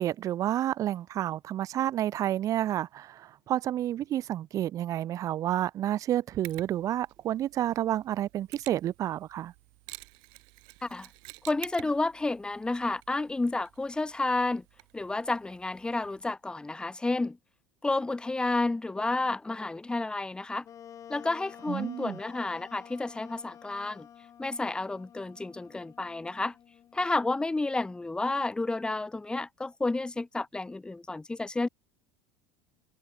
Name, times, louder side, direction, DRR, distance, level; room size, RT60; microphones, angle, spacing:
voice 1, 0.0-9.5 21.7-22.2, right 12 dB, 45° right, 0.6 m, -30 dB
Mechanisms, 6.4-16.3, right 32 dB, 70° right, 2.8 m, -51 dB
voice 2, 11.5-14.6 14.9-17.4 17.8-20.6 21.1-24.1 24.4-26.5 26.9-31.7, left 2 dB, 10° left, 1.1 m, -31 dB
Wind instrument woodwind instrument, 20.6-28.1, left 9 dB, 40° left, 2.8 m, -51 dB
supercardioid pair, 100°, 8 cm